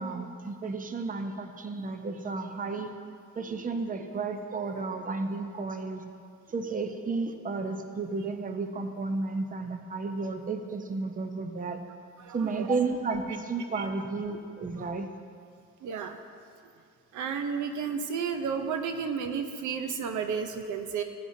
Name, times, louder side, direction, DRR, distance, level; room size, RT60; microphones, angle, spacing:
voice 1, 0.0-2.9 3.4-6.0 6.5-11.8 12.3-15.1, right 3 dB, 25° right, 6 dB, 0.8 m, -32 dB
voice 2, 12.2-12.8 13.7-13.8 14.8-15.0 15.8-16.2 17.1-21.0, right 6 dB, 80° right, 7 dB, 0.7 m, -32 dB
14.0 x 9.5 x 2.7 m, 2.3 s
cardioid pair, 90°, 30 cm